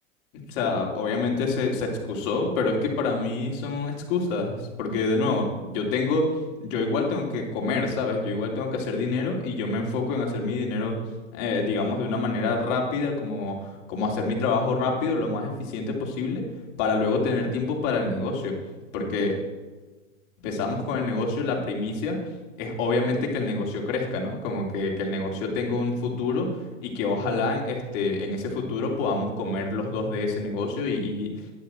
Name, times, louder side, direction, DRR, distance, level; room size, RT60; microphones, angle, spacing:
voice 1, 0.5-6.2 6.6-11.0 11.3-16.4 16.8-18.5 18.9-19.4 20.4-22.2 22.6-31.3, left 3 dB, 45° left, 0 dB, 3.2 m, -27 dB
12.0 x 10.5 x 4.5 m, 1.2 s
hypercardioid pair, 115°, 39 cm